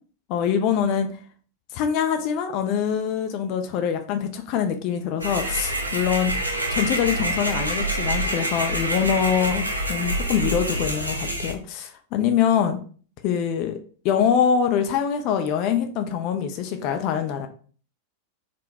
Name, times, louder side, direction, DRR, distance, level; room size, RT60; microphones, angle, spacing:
voice 1, 0.3-1.1 1.7-6.3 6.7-9.6 9.9-12.8 13.2-13.8 14.0-17.5, left 8 dB, 40° left, 6 dB, 0.4 m, -24 dB
sound 1, 5.2-11.5, right 1 dB, 85° right, 0.5 m, -26 dB
3.7 x 2.1 x 2.7 m, 0.42 s
figure-of-eight pair, 90°, 0 cm